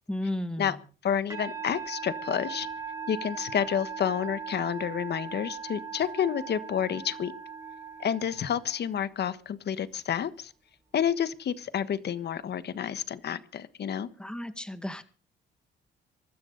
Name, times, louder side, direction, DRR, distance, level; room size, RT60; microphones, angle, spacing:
voice 1, 0.1-0.8 14.2-15.0, left 1 dB, 5° left, 10 dB, 2.1 m, -33 dB
voice 2, 1.0-2.7 3.1-7.3 8.0-10.5 10.9-14.1, left 9 dB, 60° left, 14 dB, 1.4 m, -29 dB
Musical instrument, 1.3-8.9, right 6 dB, 15° right, 5.5 m, -39 dB
23.5 x 13.0 x 4.1 m, 0.38 s
cardioid pair, 90°, 20 cm